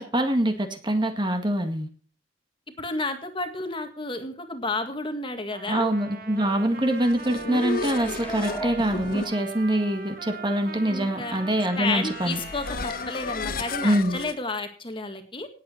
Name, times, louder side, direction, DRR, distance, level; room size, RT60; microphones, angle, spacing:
voice 1, 0.0-1.9 5.7-12.4 13.8-14.2, right 1 dB, 25° right, 6 dB, 1.9 m, -24 dB
voice 2, 2.8-6.0 10.8-11.4 11.8-15.5, left 3 dB, 30° left, 7 dB, 1.8 m, -31 dB
Trumpet, 5.5-13.9, right 4 dB, 55° right, 2.0 m, -42 dB
sound 1, 6.8-14.4, left 4 dB, 50° left, 0.9 m, -35 dB
sound 2, 7.8-9.9 10.3-10.4, right 1 dB, 10° left, 2.4 m, -38 dB
18.5 x 8.4 x 4.4 m, 0.41 s
head